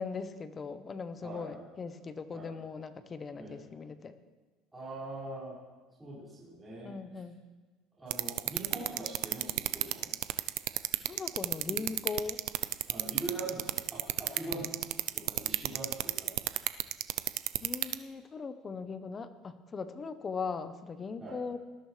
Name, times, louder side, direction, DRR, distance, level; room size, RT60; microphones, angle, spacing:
voice 1, 0.0-4.1 6.8-7.4 11.1-12.4 17.6-21.6, left 5 dB, 25° left, 11 dB, 1.0 m, -39 dB
voice 2, 1.2-1.6 2.3-2.5 3.4-3.6 4.7-5.5 6.0-7.0 8.0-10.1 12.9-14.7 15.1-16.4 21.2-21.4, right 2 dB, 10° right, -9 dB, 5.8 m, -42 dB
sound 1, 8.1-17.9, right 19 dB, 70° right, 0.5 m, -29 dB
19.0 x 13.5 x 3.4 m, 1.3 s
cardioid pair, 125°, 0 cm